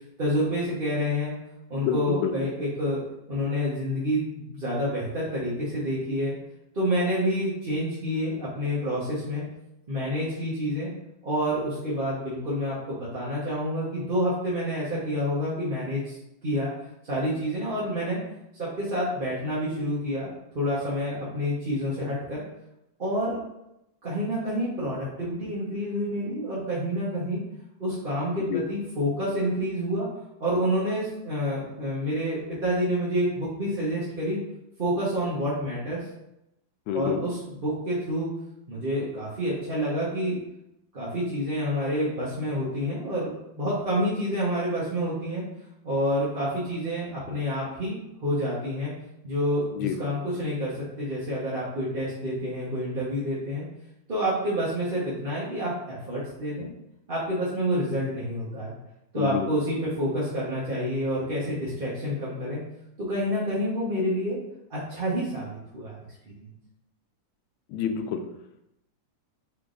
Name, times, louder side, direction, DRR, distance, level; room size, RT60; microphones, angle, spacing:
voice 1, 0.2-1.3 1.7-3.0 3.3-6.3 6.7-9.4 9.9-10.9 11.2-16.2 16.4-16.7 17.1-18.2 18.6-20.3 20.5-22.4 23.0-23.4 24.0-27.4 27.8-30.1 30.4-34.4 34.8-36.0 36.9-38.3 38.7-40.4 40.9-45.4 45.8-48.9 49.2-50.7 51.0-53.6 54.1-56.7 57.1-58.7 59.1-62.6 63.0-64.4 64.7-66.0 66.2-66.5, equal, 40° right, -9 dB, 0.9 m, -28 dB
voice 2, 1.8-2.3 28.5-28.6 36.9-37.2 49.7-49.9 59.1-59.5 67.7-68.2, left 8 dB, 85° left, 6 dB, 1.3 m, -28 dB
3.8 x 3.4 x 3.8 m, 0.86 s
omnidirectional pair, 2.1 m